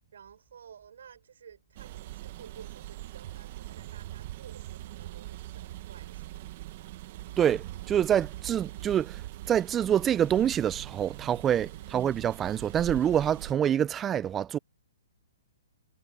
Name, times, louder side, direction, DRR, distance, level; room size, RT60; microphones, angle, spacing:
voice 1, 0.1-6.5 11.7-12.1, right 8 dB, 65° right, 5.9 m, -53 dB
sound 1, 1.8-13.5, right 16 dB, 35° right, 1.0 m, -42 dB
voice 2, 7.4-14.6, right 9 dB, 15° right, 0.3 m, -26 dB
hypercardioid pair, 165°, 0 cm